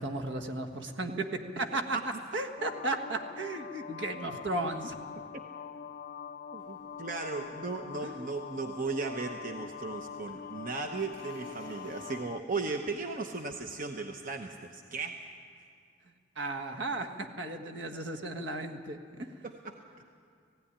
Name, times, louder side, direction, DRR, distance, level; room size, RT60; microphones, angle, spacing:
voice 1, 0.0-2.0 2.3-5.0 8.0-8.3 16.4-19.3, right 2 dB, 65° right, 4 dB, 1.6 m, -35 dB
sound 1, 2.6-12.4, left 7 dB, 50° left, 0.5 m, -44 dB
voice 2, 6.5-15.2 19.4-20.0, right 3 dB, 45° right, 4 dB, 0.9 m, -36 dB
sound 2, 6.6-12.2, equal, 90° right, 4.7 m, -57 dB
18.5 x 16.0 x 10.0 m, 2.2 s
head